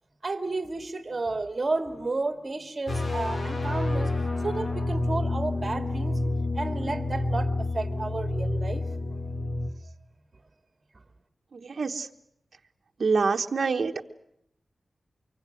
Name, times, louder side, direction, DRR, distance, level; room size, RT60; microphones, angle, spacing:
voice 1, 0.2-6.2 6.5-8.9, right 3 dB, 35° right, 7 dB, 2.5 m, -32 dB
sound 1, 2.9-9.7, left 2 dB, 50° left, 2.4 m, -29 dB
voice 2, 11.5-12.1 13.0-14.0, right 4 dB, 65° right, 3 dB, 1.1 m, -26 dB
24.5 x 24.5 x 7.9 m, 0.76 s
wide cardioid pair, 80°, 0 cm